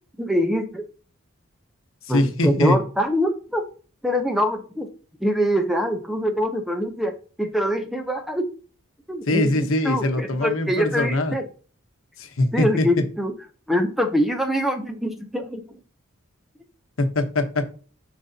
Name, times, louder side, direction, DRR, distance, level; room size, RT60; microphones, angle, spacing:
voice 1, 0.2-0.8 2.1-3.6 4.0-4.9 5.2-7.1 7.4-8.5 9.1-11.4 12.5-13.3 13.7-15.8, equal, ahead, 4 dB, 0.6 m, -24 dB
voice 2, 2.1-2.8 9.3-11.4 12.2-12.9 17.0-17.6, left 1 dB, 70° left, 6 dB, 1.0 m, -22 dB
10.5 x 4.9 x 2.8 m, 0.39 s
head